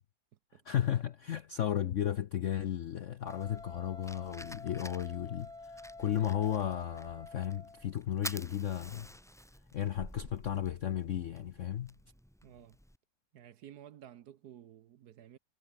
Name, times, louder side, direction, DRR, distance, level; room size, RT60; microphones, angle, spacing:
voice 1, 0.5-9.1 9.7-11.9, left 10 dB, 65° left, 0.7 m, -34 dB
Wind instrument woodwind instrument, 3.2-7.9, left 2 dB, 20° left, 2.3 m, -49 dB
Fire, 3.3-13.0, equal, ahead, 2.6 m, -50 dB
voice 2, 12.4-12.8 13.3-15.4, right 11 dB, 65° right, 1.2 m, -53 dB
omnidirectional pair, 2.1 m